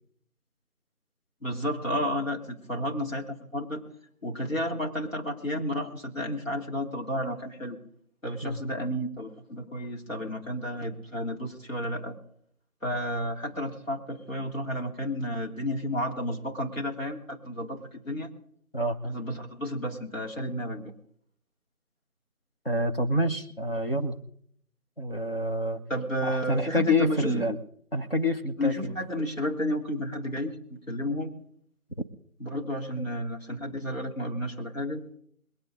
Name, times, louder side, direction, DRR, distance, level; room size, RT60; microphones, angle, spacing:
voice 1, 1.4-3.8 4.2-7.8 8.2-12.2 12.8-18.3 19.0-20.9 25.9-27.4 28.6-31.3 32.4-35.0, equal, 60° left, -1 dB, 3.4 m, -32 dB
voice 2, 22.6-24.2 25.0-25.8 26.2-27.6 27.9-29.0 33.0-33.1, left 1 dB, 40° left, 4 dB, 1.1 m, -27 dB
22.0 x 8.9 x 5.0 m, 0.64 s
figure-of-eight pair, 175°, 44 cm